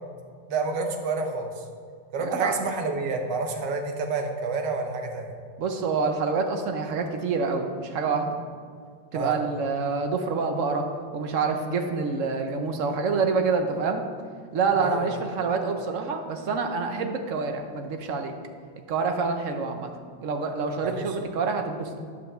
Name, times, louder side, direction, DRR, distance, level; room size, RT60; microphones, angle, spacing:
voice 1, 0.5-1.6 2.1-5.3 9.1-9.4 14.8-15.1 20.8-21.2, right 3 dB, 70° right, 3 dB, 1.6 m, -29 dB
voice 2, 2.2-2.5 5.6-8.4 9.1-10.9 11.1-14.0 14.5-18.3 18.9-19.9 20.2-22.0, right 4 dB, 55° right, 5 dB, 1.0 m, -27 dB
11.0 x 5.0 x 6.7 m, 2.1 s
omnidirectional pair, 2.0 m